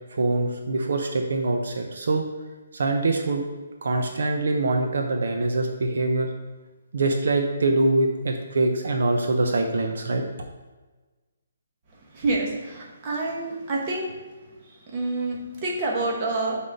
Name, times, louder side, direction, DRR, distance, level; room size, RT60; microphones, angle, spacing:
voice 1, 0.1-2.2 2.7-3.4 3.8-6.3 6.9-10.2, right 2 dB, 60° right, 3 dB, 0.7 m, -24 dB
voice 2, 12.1-14.1 14.9-16.6, right 2 dB, 20° right, -2 dB, 1.0 m, -27 dB
6.2 x 3.7 x 5.3 m, 1.3 s
hypercardioid pair, 180°, 0 cm